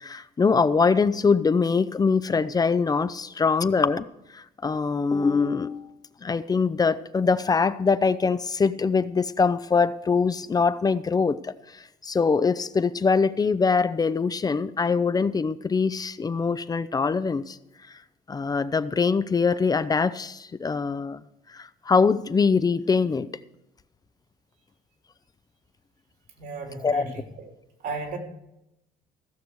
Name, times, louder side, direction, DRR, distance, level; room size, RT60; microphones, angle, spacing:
voice 1, 0.0-4.1 4.3-5.9 6.2-17.6 18.3-21.2 21.5-23.3 26.8-27.0, left 5 dB, 20° left, 14 dB, 0.5 m, -23 dB
voice 2, 26.4-27.5 27.8-28.2, right 3 dB, 75° right, 2 dB, 3.5 m, -35 dB
16.0 x 6.8 x 6.3 m, 0.87 s
cardioid pair, 110°, 17 cm